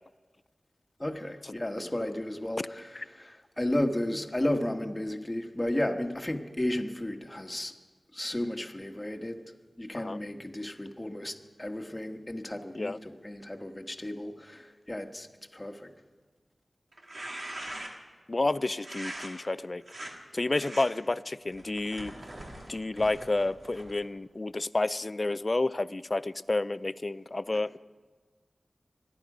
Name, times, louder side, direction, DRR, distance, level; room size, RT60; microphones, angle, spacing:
voice 1, 1.0-7.7 8.1-9.4 9.8-15.3 15.5-15.9, left 1 dB, 20° left, 4 dB, 1.5 m, -33 dB
sound 1, 16.9-18.1 18.8-19.3 19.8-20.1 20.5-20.8 21.5-24.1, right 1 dB, 60° right, 2.5 m, -42 dB
voice 2, 18.3-19.8 20.3-22.1 22.7-27.8, left 2 dB, 45° left, 17 dB, 0.4 m, -30 dB
25.0 x 10.5 x 5.0 m, 1.4 s
cardioid pair, 45°, 0 cm